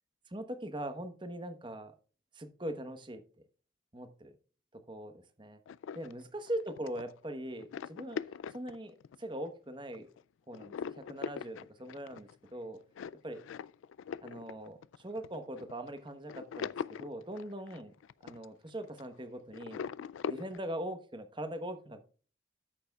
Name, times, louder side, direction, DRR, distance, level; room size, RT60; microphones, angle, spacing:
voice 1, 0.3-1.9 2.3-3.2 3.9-4.3 4.9-5.6 5.9-8.2 8.5-10.1 10.5-12.8 13.2-13.4 14.2-16.7 17.0-17.9 18.2-19.9 20.3-22.0, right 1 dB, 25° right, 8 dB, 1.0 m, -41 dB
sound 1, 5.7-9.5 9.9-10.2 10.5-19.2 19.5-20.6, left 7 dB, 90° left, 0.3 m, -42 dB
13.0 x 6.9 x 2.3 m, 0.40 s
head